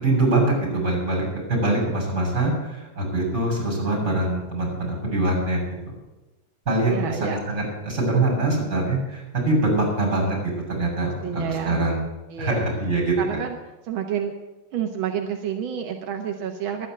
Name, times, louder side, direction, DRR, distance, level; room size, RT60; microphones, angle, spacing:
voice 1, 0.0-1.2 1.5-5.6 5.8-5.9 6.7-12.0 12.4-13.1, right 2 dB, 35° right, -2 dB, 7.6 m, -23 dB
voice 2, 6.9-7.4 11.0-11.8 12.3-12.6 13.2-13.6 13.8-14.3 14.7-16.9, right 8 dB, 90° right, 4 dB, 1.9 m, -29 dB
12.0 x 9.9 x 9.1 m, 1.0 s
omnidirectional pair, 2.1 m